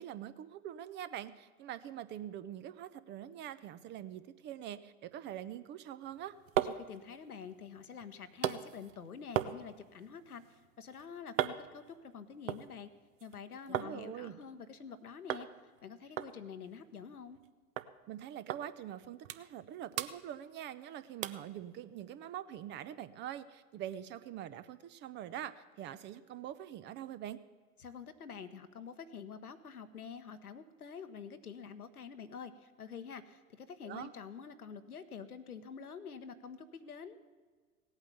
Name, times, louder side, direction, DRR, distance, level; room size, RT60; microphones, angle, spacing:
voice 1, 0.0-6.4 13.7-14.4 18.1-27.4 33.8-34.1, right 11 dB, 25° right, 14 dB, 0.5 m, -44 dB
sound 1, 6.0-13.9 14.3-14.9 15.3-15.5 15.8-15.9 16.2-17.5 17.8-17.9 18.5-18.6 19.0-19.7 19.9-20.8 21.2-21.5 22.0-22.1, right 11 dB, 60° right, 0.9 m, -39 dB
voice 2, 6.9-10.4 10.8-12.9 13.2-15.5 15.8-17.4 27.8-37.2, left 6 dB, 85° left, 9 dB, 1.1 m, -47 dB
17.0 x 8.9 x 7.0 m, 1.5 s
figure-of-eight pair, 95°, 43 cm